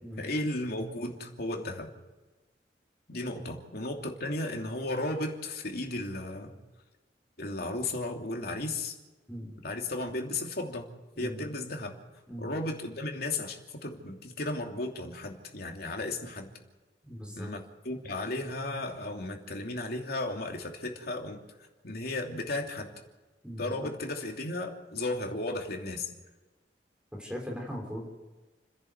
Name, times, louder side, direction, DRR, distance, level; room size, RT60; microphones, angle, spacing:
voice 1, 0.2-1.9 3.1-6.5 7.4-8.9 9.6-10.8 11.2-11.9 12.4-16.5 17.4-21.4 21.8-22.9 23.6-26.1, left 2 dB, 60° left, 2 dB, 2.9 m, -34 dB
voice 2, 17.0-17.5 23.4-23.9 27.1-28.1, equal, 5° right, 0 dB, 3.9 m, -39 dB
29.5 x 11.0 x 8.1 m, 1.2 s
head